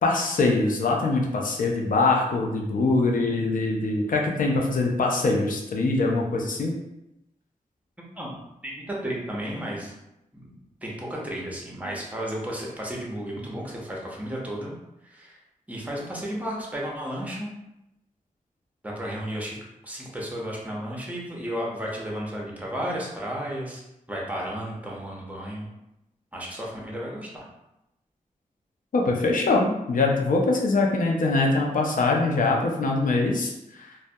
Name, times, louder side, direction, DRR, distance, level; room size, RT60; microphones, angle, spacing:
voice 1, 0.0-6.7 28.9-33.9, left 3 dB, 70° left, 0 dB, 0.5 m, -23 dB
voice 2, 8.6-9.9 10.3-14.7 15.0-15.4 15.7-17.5 18.8-19.6 19.8-23.8 24.1-25.7 26.3-27.5, equal, 10° right, -3 dB, 0.8 m, -33 dB
2.1 x 2.1 x 2.7 m, 0.88 s
cardioid pair, 55°, 14 cm